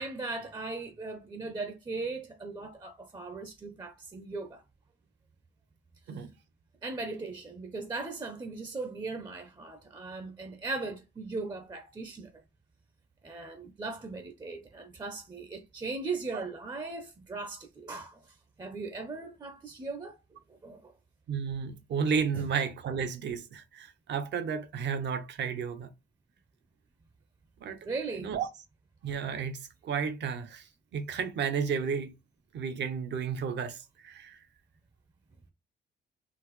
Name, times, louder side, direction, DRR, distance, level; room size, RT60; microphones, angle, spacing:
voice 1, 0.0-4.6 6.8-12.3 13.2-18.2 18.6-20.2 20.6-20.9 22.3-22.4 27.8-28.4, right 3 dB, 20° right, 0.5 m, -38 dB
voice 2, 21.3-25.9 27.6-27.8 28.2-28.5 29.0-30.6 30.9-32.1 32.5-33.8 34.0-34.4, right 6 dB, 65° right, 0.7 m, -32 dB
3.8 x 2.0 x 3.0 m
cardioid pair, 90°, 20 cm